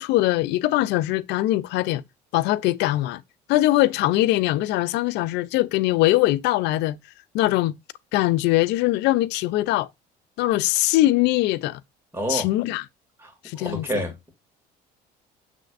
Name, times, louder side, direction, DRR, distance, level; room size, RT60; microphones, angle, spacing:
voice 1, 0.0-2.0 2.3-3.2 3.5-7.0 7.3-7.7 8.1-9.9 10.4-11.8 12.3-12.8 13.4-14.0, left 16 dB, 70° left, 0.4 m, -22 dB
voice 2, 12.1-12.5 13.2-14.3, right 1 dB, 10° right, 2.1 m, -29 dB
6.1 x 3.3 x 2.4 m
supercardioid pair, 80°, 19 cm